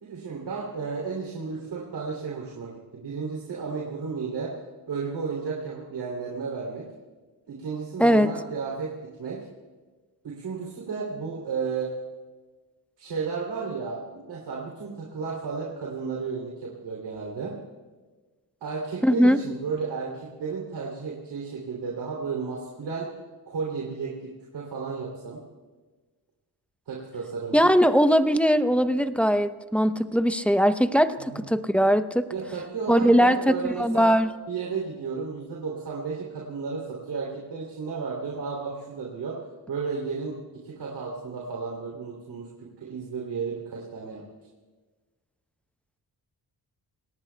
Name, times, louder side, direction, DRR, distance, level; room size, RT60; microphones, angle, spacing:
voice 1, 0.0-4.5 4.9-6.9 7.5-8.9 9.2-9.5 10.2-11.9 13.0-17.5 18.6-23.1 23.5-25.4 26.9-27.7 31.2-31.4 32.3-34.1 34.5-39.4 39.7-44.2, right 5 dB, 85° right, -3 dB, 3.1 m, -33 dB
voice 2, 8.0-8.3 19.0-19.4 27.5-32.3 32.9-34.3, equal, 5° left, 9 dB, 0.8 m, -20 dB
27.5 x 18.5 x 2.3 m, 1.3 s
cardioid pair, 60°, 40 cm